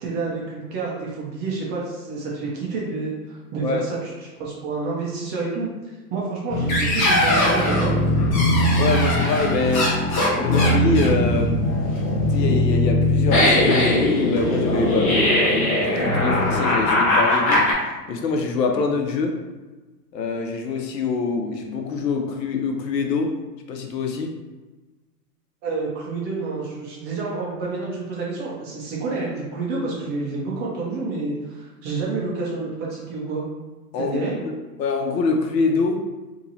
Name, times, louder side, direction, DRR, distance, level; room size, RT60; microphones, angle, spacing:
voice 1, 0.0-5.7 6.1-7.9 25.6-33.4 34.0-34.4, right 3 dB, 20° right, -4 dB, 0.6 m, -29 dB
sound 1, 6.5-17.7, left 1 dB, 25° left, 0.8 m, -20 dB
voice 2, 8.8-9.9 10.3-11.6 12.3-17.7 18.1-19.4 20.1-23.4 23.7-24.3 33.9-34.2 34.4-36.0, left 4 dB, 75° left, 3 dB, 0.8 m, -25 dB
2.8 x 2.8 x 4.0 m, 1.2 s
hypercardioid pair, 135°, 49 cm